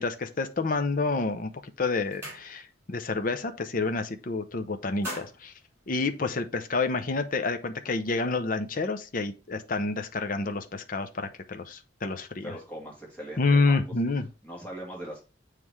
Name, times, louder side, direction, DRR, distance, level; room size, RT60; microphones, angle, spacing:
voice 1, 0.0-1.5 1.8-5.5 5.9-12.5 13.4-14.3, left 3 dB, 45° left, 0.6 m, -28 dB
sound 1, 1.4-1.5 1.8-2.9 3.3-3.5 3.8-4.4 4.7-6.6, equal, 15° right, 4.2 m, -43 dB
voice 2, 12.4-13.8 14.4-15.2, right 1 dB, 10° left, 2.3 m, -40 dB
7.4 x 3.3 x 4.7 m
head